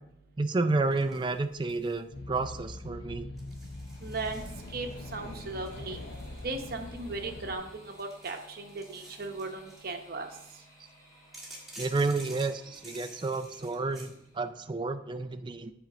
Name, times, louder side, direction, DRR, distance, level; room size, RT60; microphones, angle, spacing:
voice 1, 0.4-3.3 11.8-15.7, right 3 dB, 25° right, 9 dB, 0.4 m, -30 dB
sound 1, 0.9-2.0 2.3-2.7 3.4-5.0 5.6-7.4 7.8-10.0 11.3-14.1, right 1 dB, ahead, 1.7 m, -51 dB
sound 2, 2.1-7.6, left 2 dB, 55° left, 0.7 m, -42 dB
sound 3, 3.3-14.5, equal, 15° left, 2.2 m, -58 dB
voice 2, 4.0-4.4 4.7-6.0 6.4-10.3, right 3 dB, 50° right, 4 dB, 0.9 m, -37 dB
8.0 x 4.5 x 4.9 m, 0.82 s
head